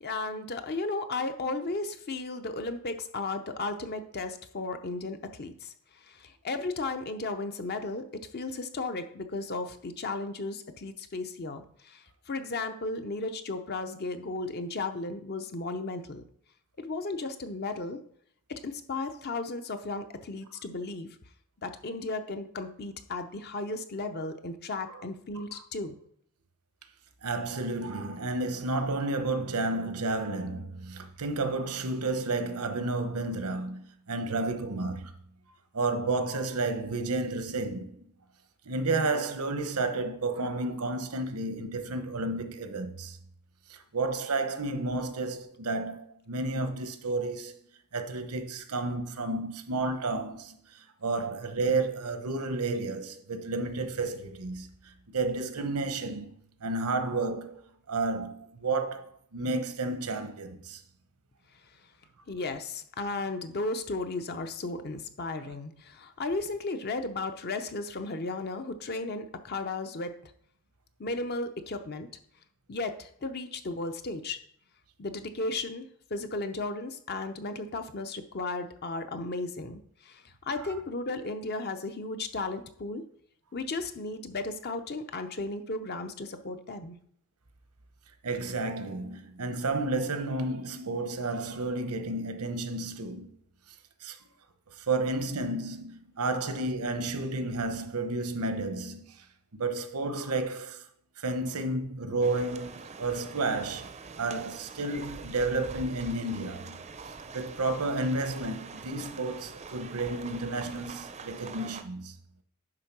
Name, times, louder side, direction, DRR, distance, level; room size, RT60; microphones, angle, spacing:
voice 1, 0.0-16.2 16.8-18.0 18.5-21.2 21.6-25.9 62.3-70.1 71.0-72.1 72.7-74.4 75.0-83.0 83.5-87.0, left 3 dB, 45° left, 0.7 m, -35 dB
voice 2, 27.2-35.1 35.7-38.0 38.6-43.2 43.7-47.6 47.9-56.3 56.6-60.8 88.2-93.3 94.0-94.2 94.7-99.2 99.5-100.9 101.2-106.8 107.3-112.1, right 2 dB, 90° right, 1.0 m, -31 dB
sound 1, 102.2-111.8, right 4 dB, 30° right, 0.5 m, -44 dB
9.9 x 3.6 x 6.0 m
head